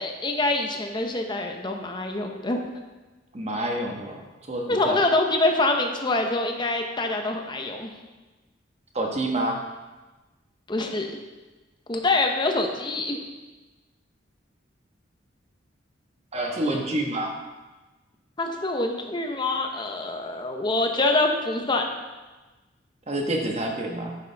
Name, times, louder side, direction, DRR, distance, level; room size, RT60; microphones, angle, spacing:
voice 1, 0.0-2.7 4.7-7.9 10.7-11.1 11.9-13.2 18.4-21.9, left 2 dB, 25° left, 3 dB, 0.9 m, -25 dB
voice 2, 3.3-4.2 4.5-5.0 8.9-9.6 16.3-17.3 23.1-24.2, right 1 dB, 35° right, 1 dB, 1.3 m, -27 dB
9.4 x 8.3 x 3.4 m, 1.2 s
head